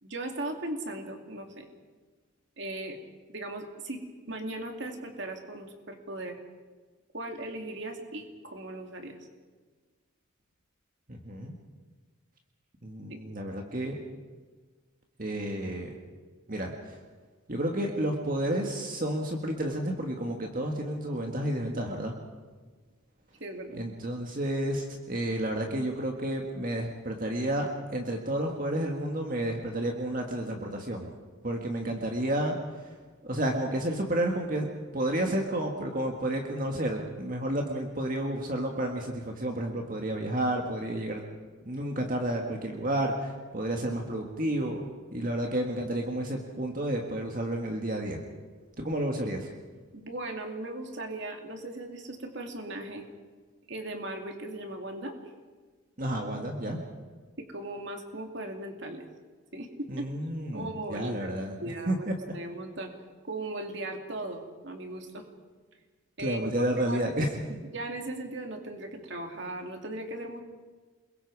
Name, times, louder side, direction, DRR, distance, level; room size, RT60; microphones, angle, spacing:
voice 1, 0.0-1.7 2.6-3.0 3.3-6.4 7.1-9.2 13.1-13.2 23.4-23.7 49.9-53.0 53.7-55.2 57.4-59.1 59.5-60.1 60.5-61.3 61.6-62.9 63.2-65.3 66.2-66.4 66.8-67.1 67.7-70.4, right 2 dB, 55° right, 3 dB, 2.7 m, -38 dB
voice 2, 11.1-11.5 12.8-14.0 15.2-16.0 16.5-17.0 17.5-22.2 23.7-31.1 31.4-33.0 33.2-34.7 34.9-41.2 41.7-44.8 45.1-48.2 48.8-49.5 56.0-56.8 59.9-61.6 61.9-62.1 66.2-67.3, right 1 dB, 40° right, 2 dB, 1.9 m, -31 dB
28.0 x 22.0 x 4.8 m, 1.4 s
head